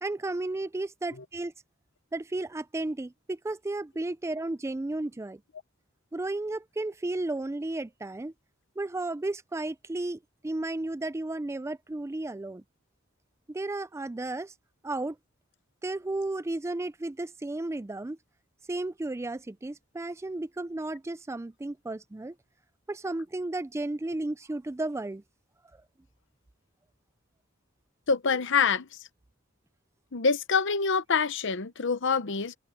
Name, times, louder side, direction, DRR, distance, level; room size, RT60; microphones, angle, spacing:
voice 1, 0.0-1.5 2.1-5.4 6.1-8.3 8.8-12.6 13.5-14.5 14.8-15.2 15.8-18.2 18.7-22.4 22.9-25.2, right 2 dB, 15° right, 0.4 m, -33 dB
voice 2, 28.1-28.9 30.1-32.6, left 5 dB, 60° left, 0.9 m, -26 dB
head